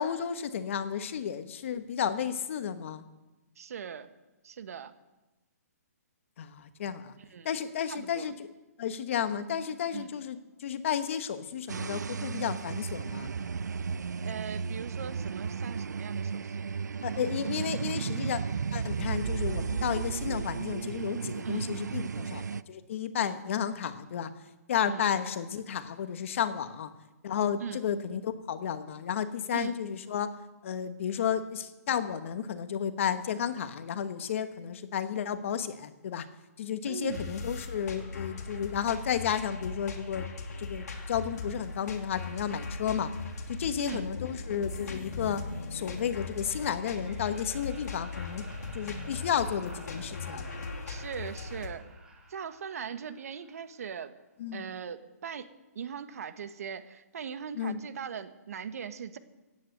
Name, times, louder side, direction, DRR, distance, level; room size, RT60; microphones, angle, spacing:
voice 1, 0.0-3.0 6.4-7.1 7.4-8.3 8.8-13.3 17.0-18.4 18.7-24.3 24.7-26.9 27.2-30.3 30.6-36.3 36.6-40.3 40.6-43.1 43.5-45.4 45.7-48.5 48.7-50.5 54.4-54.6 57.5-57.8, left 8 dB, 50° left, 11 dB, 1.3 m, -32 dB
voice 2, 3.6-4.1 4.4-4.9 7.2-7.5 7.9-8.3 9.9-10.1 14.2-16.8 21.4-21.7 23.2-23.4 24.8-25.1 27.6-27.8 29.5-29.8 36.8-37.3 43.8-44.1 50.8-51.8 52.3-54.1 54.5-55.5 55.7-59.2, right 7 dB, 60° right, 10 dB, 1.5 m, -40 dB
sound 1, 11.7-22.6, right 6 dB, 90° right, 0.5 m, -34 dB
sound 2, 37.1-51.7, left 3 dB, 70° left, 2.8 m, -39 dB
Laughter, 47.0-54.0, right 3 dB, 10° right, 2.8 m, -54 dB
16.5 x 9.7 x 7.9 m, 1.1 s
hypercardioid pair, 155°, 9 cm